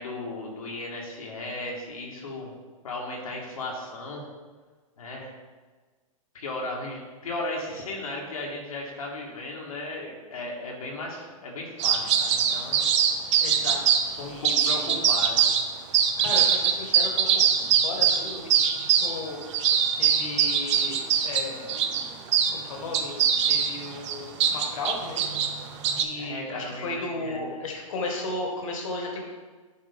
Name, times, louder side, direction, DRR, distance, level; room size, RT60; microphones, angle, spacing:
voice 1, 0.0-2.5 2.8-4.2 5.0-5.3 6.3-12.8 14.2-15.4 26.1-27.5, left 2 dB, 85° left, -2 dB, 1.8 m, -36 dB
sound 1, 11.8-14.1 14.4-15.7 15.9-22.6 22.9-26.0, right 8 dB, 55° right, 0.7 m, -23 dB
voice 2, 13.4-13.8 14.3-14.9 16.2-17.3 17.8-18.6 19.0-19.4 20.0-21.9 22.5-23.2 23.4-25.3 26.0-29.2, left 2 dB, 70° left, 1 dB, 1.7 m, -34 dB
9.9 x 3.3 x 3.6 m, 1.4 s
hypercardioid pair, 120°, 18 cm